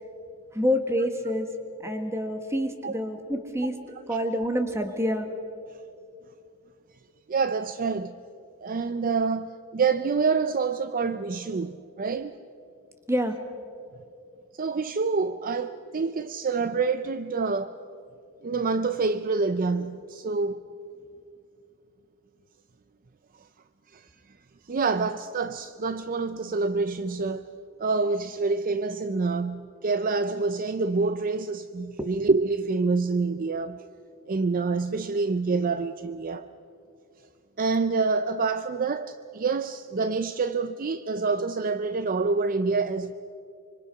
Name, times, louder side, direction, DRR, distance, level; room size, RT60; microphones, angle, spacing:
voice 1, 0.5-1.5 1.8-3.7 4.1-5.3 13.1-13.4, equal, 15° right, 1.7 m, -27 dB
voice 2, 7.3-8.1 8.6-12.4 14.5-17.8 18.4-20.6 23.9-24.1 24.7-27.5 27.8-33.8 34.3-36.5 37.6-43.1, right 4 dB, 40° right, 0.5 m, -27 dB
25.5 x 25.0 x 5.7 m
head